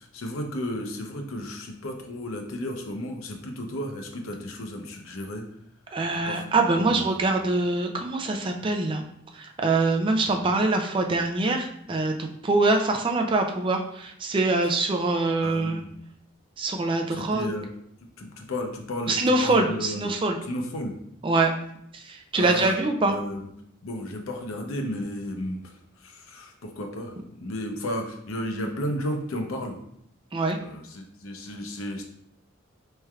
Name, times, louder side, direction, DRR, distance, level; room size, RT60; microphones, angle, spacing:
voice 1, 0.0-5.5 6.1-6.5 6.8-7.2 15.4-15.9 17.1-17.7 18.0-20.2 20.5-21.0 22.4-22.7 23.0-23.4 23.8-29.8 30.6-32.0, left 1 dB, 85° left, 4 dB, 0.6 m, -33 dB
voice 2, 5.9-9.0 9.3-15.9 16.6-17.5 19.1-20.4 21.2-21.5 21.9-23.2 30.3-30.6, right 2 dB, 25° right, 3 dB, 0.3 m, -24 dB
4.3 x 3.2 x 2.4 m, 0.72 s
head